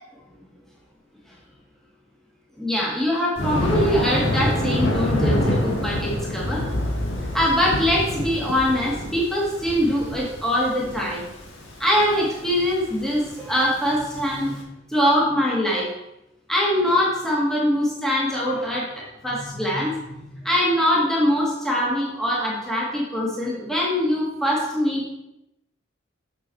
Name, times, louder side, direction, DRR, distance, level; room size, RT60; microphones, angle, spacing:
voice 1, 2.6-6.6 7.3-11.2 11.8-14.6 14.9-15.9 16.5-20.1 20.4-25.0, equal, ahead, -4 dB, 2.0 m, -23 dB
Thunder, 3.4-14.5, left 1 dB, 90° left, 1.9 m, -26 dB
8.3 x 6.4 x 4.6 m, 0.86 s
head